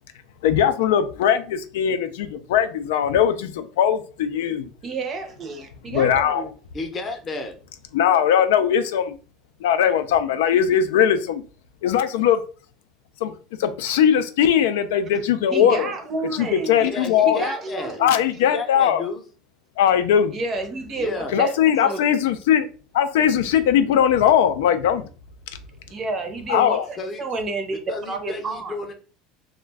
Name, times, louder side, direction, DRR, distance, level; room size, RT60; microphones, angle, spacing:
voice 1, 0.4-3.5 3.8-4.6 5.9-6.4 7.9-9.1 9.6-11.4 11.8-12.4 13.2-13.3 13.8-15.9 16.4-17.5 18.0-19.0 19.8-20.3 21.3-22.7 22.9-25.1 26.5-26.8, left 9 dB, 90° left, 0.3 m, -19 dB
voice 2, 4.8-6.5 15.5-16.8 17.2-18.1 20.3-22.0 25.9-28.8, right 3 dB, 30° right, 0.6 m, -30 dB
voice 3, 6.7-7.5 16.8-18.0 18.4-19.2 21.0-21.4 27.0-27.2 27.9-28.9, left 3 dB, 25° left, 0.6 m, -32 dB
2.4 x 2.1 x 3.3 m
supercardioid pair, 135°, 0 cm